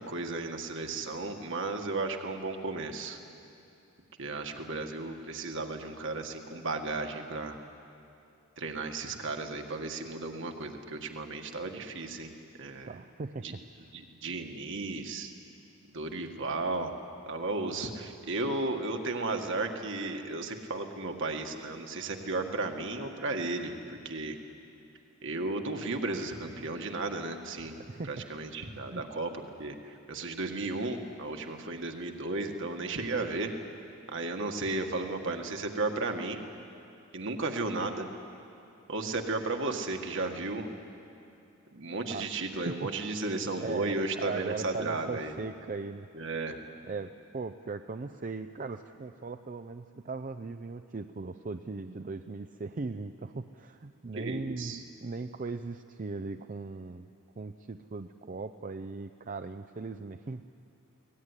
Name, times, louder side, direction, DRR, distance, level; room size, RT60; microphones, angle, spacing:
voice 1, 0.0-3.2 4.2-7.6 8.6-12.3 12.6-13.0 13.4-13.5 13.9-15.3 15.9-17.0 17.3-24.4 25.2-29.3 29.6-33.5 33.8-36.4 37.1-38.1 38.9-40.7 41.7-45.3 46.1-46.6 54.1-54.8, right 3 dB, 60° right, 4 dB, 1.8 m, -34 dB
voice 2, 12.9-13.9 27.8-28.2 28.9-29.0 42.1-42.3 42.7-42.9 43.6-46.1 46.9-57.1 57.4-60.5, right 3 dB, 35° right, 8 dB, 0.5 m, -39 dB
22.5 x 18.5 x 9.8 m, 2.7 s
head